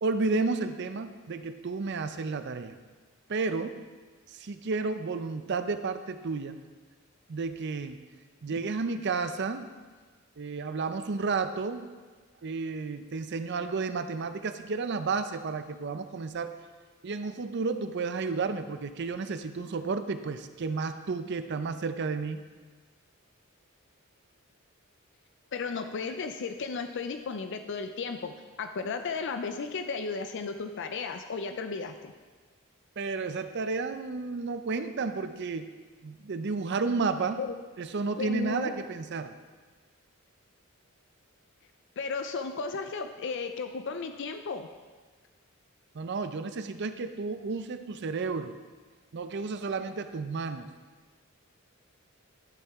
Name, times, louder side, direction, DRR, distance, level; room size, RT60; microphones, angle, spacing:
voice 1, 0.0-2.7 3.3-3.8 4.3-6.6 7.3-8.0 8.4-9.7 10.4-11.9 12.4-16.6 17.0-22.4 33.0-35.7 36.0-37.4 37.8-39.4 45.9-48.6 49.1-50.7, right 4 dB, 55° right, 10 dB, 0.5 m, -32 dB
voice 2, 25.5-28.3 28.6-32.1 37.4-37.5 38.2-38.7 42.0-44.7, left 4 dB, 55° left, 7 dB, 0.4 m, -34 dB
12.0 x 6.6 x 3.6 m, 1.4 s
head